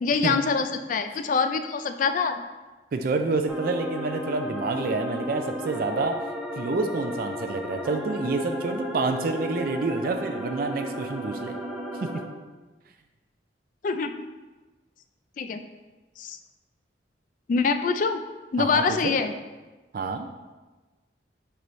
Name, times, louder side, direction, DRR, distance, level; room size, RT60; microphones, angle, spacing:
voice 1, 0.0-2.4 13.8-14.1 15.4-15.6 16.2-16.4 17.5-18.2 18.5-19.3, left 5 dB, 45° left, 8 dB, 0.3 m, -25 dB
voice 2, 2.9-6.2 6.6-11.6 12.0-12.1 18.6-19.2 19.9-20.3, right 3 dB, 55° right, 6 dB, 0.4 m, -28 dB
sound 1, 3.5-12.2, equal, ahead, 0.6 m, -34 dB
6.6 x 4.6 x 3.1 m, 1.2 s
head